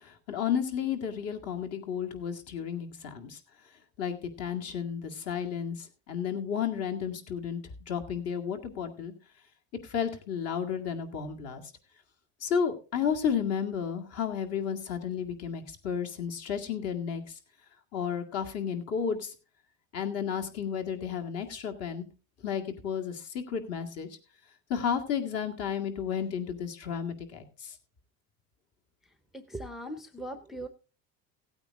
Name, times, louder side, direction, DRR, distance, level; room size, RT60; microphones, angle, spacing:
voice 1, 0.0-3.4 4.0-7.6 7.9-9.1 9.9-11.6 12.4-17.2 17.9-19.3 19.9-22.1 22.4-24.1 24.7-27.7, left 7 dB, 50° left, 4 dB, 2.1 m, -32 dB
voice 2, 29.3-30.7, right 1 dB, ahead, 9 dB, 0.6 m, -39 dB
16.0 x 8.8 x 3.6 m, 0.34 s
cardioid pair, 160°, 32 cm